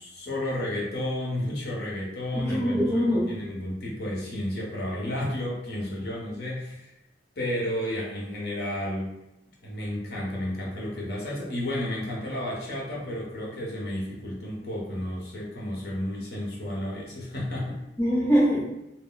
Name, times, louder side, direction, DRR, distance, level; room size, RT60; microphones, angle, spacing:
voice 1, 0.0-6.9 7.4-9.1 9.6-17.8, left 1 dB, 60° left, -3 dB, 0.9 m, -32 dB
voice 2, 2.3-3.5 18.0-18.6, equal, 15° left, -7 dB, 0.9 m, -23 dB
2.2 x 2.1 x 3.8 m, 0.88 s
head